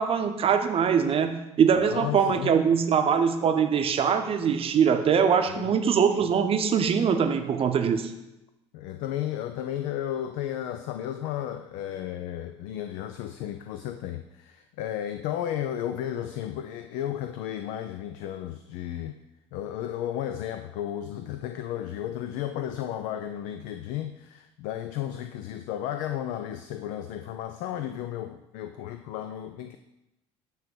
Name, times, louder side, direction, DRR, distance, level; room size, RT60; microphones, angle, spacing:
voice 1, 0.0-8.1, right 7 dB, 35° right, 6 dB, 0.7 m, -23 dB
voice 2, 1.7-2.5 5.5-5.7 8.7-19.2 19.5-29.8, left 11 dB, 55° left, 9 dB, 0.4 m, -33 dB
8.7 x 3.1 x 5.2 m, 0.93 s
figure-of-eight pair, 55°, 16 cm